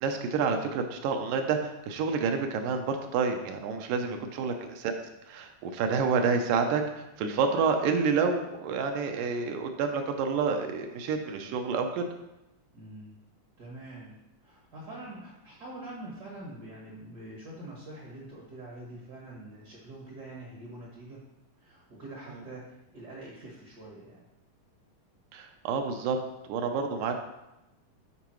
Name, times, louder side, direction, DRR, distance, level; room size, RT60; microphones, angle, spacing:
voice 1, 0.0-4.9 5.3-12.1 25.3-26.2 26.5-27.2, right 5 dB, 80° right, 5 dB, 2.2 m, -29 dB
voice 2, 12.7-13.2 13.6-14.1 14.4-21.2 21.6-24.2, right 1 dB, 60° right, -3 dB, 1.0 m, -45 dB
10.5 x 4.5 x 3.1 m, 0.94 s
omnidirectional pair, 3.8 m